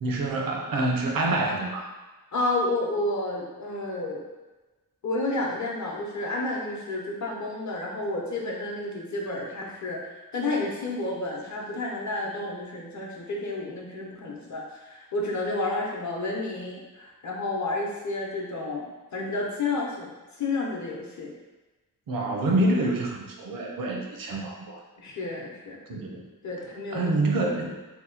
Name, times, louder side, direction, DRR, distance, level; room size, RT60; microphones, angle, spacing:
voice 1, 0.0-1.9 22.1-24.8 25.9-26.3 26.9-27.8, right 2 dB, 70° right, 0 dB, 0.6 m, -27 dB
voice 2, 2.3-4.2 5.0-18.9 19.1-21.3 25.0-25.8 26.4-27.2, left 2 dB, 55° left, -2 dB, 0.8 m, -31 dB
2.9 x 2.2 x 3.8 m, 1.2 s
wide cardioid pair, 105°, 35 cm